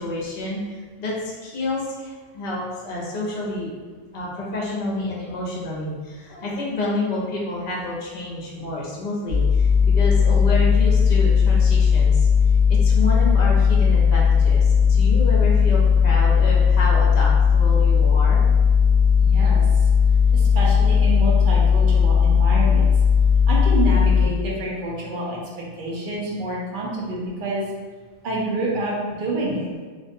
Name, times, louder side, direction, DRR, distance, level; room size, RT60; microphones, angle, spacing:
voice 1, 0.0-3.7 4.1-12.3 12.7-18.4, left 2 dB, 55° left, -4 dB, 0.7 m, -29 dB
sound 1, 9.3-24.3, left 6 dB, 85° right, 1.0 m, -17 dB
voice 2, 19.2-19.6 20.3-22.8 23.5-25.4 25.8-27.6 28.2-29.6, right 1 dB, 55° right, -4 dB, 0.6 m, -27 dB
2.5 x 2.1 x 2.7 m, 1.4 s
omnidirectional pair, 1.2 m